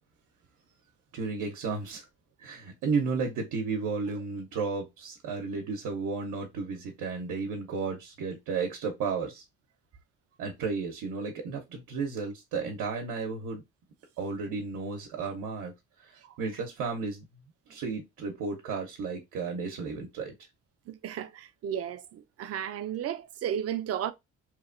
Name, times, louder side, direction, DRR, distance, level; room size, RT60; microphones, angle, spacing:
voice 1, 1.1-2.0 2.4-9.4 10.4-13.6 14.2-15.7 16.0-17.3 17.7-20.3, right 4 dB, 90° right, 0.7 m, -33 dB
voice 2, 20.9-24.1, right 9 dB, 55° right, 0.4 m, -34 dB
2.9 x 2.1 x 2.4 m
cardioid pair, 90°, 30 cm